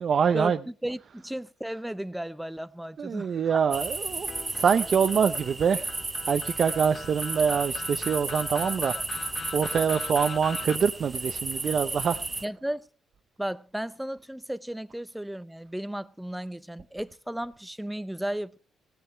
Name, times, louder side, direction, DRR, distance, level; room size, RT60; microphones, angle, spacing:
voice 1, 0.0-0.6 3.0-6.0 6.3-12.2, right 7 dB, 50° right, 0.6 m, -25 dB
voice 2, 0.8-3.6 12.4-12.9 13.4-18.6, right 1 dB, 5° right, 0.6 m, -34 dB
sound 1, 3.7-12.4, right 2 dB, 20° right, 1.0 m, -33 dB
sound 2, 4.3-10.8, left 5 dB, 40° left, 0.5 m, -41 dB
17.0 x 7.9 x 5.7 m
cardioid pair, 90°, 0 cm